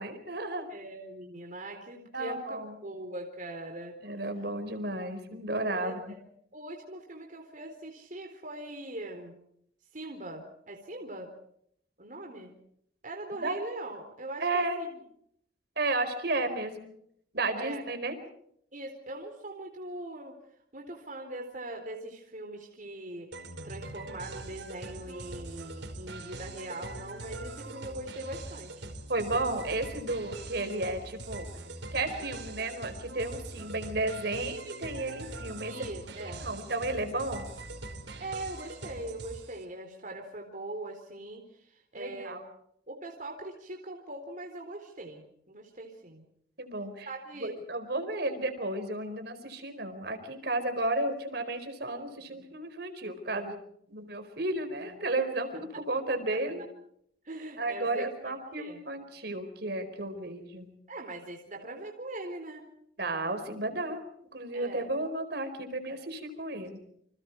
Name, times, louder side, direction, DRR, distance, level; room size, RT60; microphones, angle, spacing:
voice 1, 0.0-0.7 2.1-2.7 4.0-6.1 13.3-13.6 14.4-14.8 15.8-16.9 17.3-18.2 29.1-31.5 31.9-35.9 36.4-37.4 41.9-42.4 46.6-47.1 47.4-53.6 53.9-56.6 57.6-60.7 63.0-64.0 64.3-66.8, right 2 dB, 60° right, 8 dB, 4.7 m, -33 dB
voice 2, 0.7-4.0 5.7-6.2 6.5-9.4 9.9-11.3 12.0-12.6 13.0-15.0 17.6-17.8 18.7-20.3 20.7-23.3 23.6-28.9 35.7-36.4 38.2-42.4 42.9-46.2 47.1-47.5 57.2-58.8 60.9-62.7 64.5-64.9, right 1 dB, 45° right, 2 dB, 4.0 m, -41 dB
sound 1, 23.3-39.6, right 2 dB, 90° right, 5.0 m, -42 dB
30.0 x 26.5 x 4.8 m, 0.70 s
head